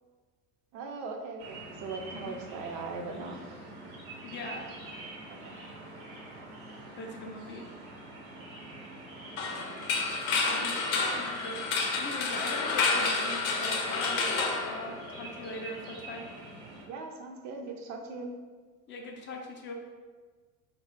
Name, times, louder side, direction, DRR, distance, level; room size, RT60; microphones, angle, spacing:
voice 1, 0.7-3.4 5.3-5.6 9.3-9.9 10.6-10.7 16.9-18.3, right 4 dB, 45° right, 3 dB, 0.4 m, -40 dB
sound 1, 1.4-16.8, right 2 dB, 80° right, 0.8 m, -45 dB
voice 2, 4.2-4.7 7.0-7.7 10.5-16.3 18.9-19.7, left 2 dB, 30° left, 2 dB, 0.4 m, -41 dB
sound 2, 9.4-15.4, left 4 dB, 75° left, 0.6 m, -30 dB
2.3 x 2.0 x 3.7 m, 1.4 s
hypercardioid pair, 75°, 41 cm